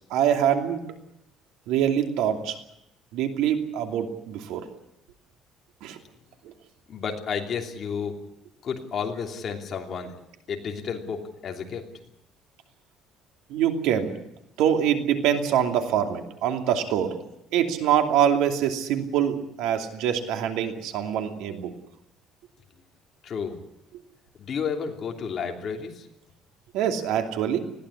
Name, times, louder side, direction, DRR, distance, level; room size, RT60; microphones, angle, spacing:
voice 1, 0.1-0.8 1.7-2.6 3.1-4.7 5.8-6.0 13.5-14.1 14.6-17.2 17.5-21.7 26.7-27.6, right 9 dB, 90° right, 5 dB, 2.7 m, -24 dB
voice 2, 6.9-8.1 8.6-10.1 10.5-11.8 23.2-23.5 24.4-26.0, left 6 dB, 40° left, 2 dB, 3.0 m, -31 dB
20.5 x 16.0 x 9.9 m, 0.83 s
cardioid pair, 155°, 0 cm